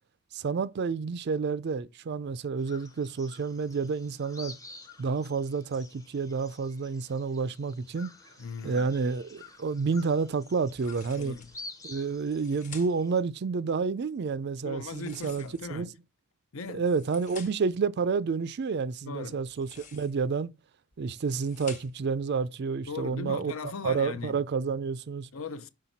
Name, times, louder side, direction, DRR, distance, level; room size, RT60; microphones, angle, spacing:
voice 1, 0.3-4.5 5.0-8.1 8.6-11.4 11.8-15.4 15.7-15.9 16.7-20.5 21.0-23.5 23.8-25.3, right 5 dB, 50° right, 0.4 m, -29 dB
sound 1, 2.6-13.2, left 3 dB, 15° left, 0.7 m, -50 dB
voice 2, 8.4-8.8 11.2-11.5 14.6-15.9 16.5-16.9 19.0-19.4 22.9-24.4 25.3-25.7, left 4 dB, 65° left, 0.6 m, -39 dB
sound 2, 10.7-11.6 12.2-13.2 14.8-15.8 16.6-17.8 19.4-20.3 20.9-22.1, left 5 dB, 35° left, 1.0 m, -50 dB
5.7 x 5.1 x 4.0 m
head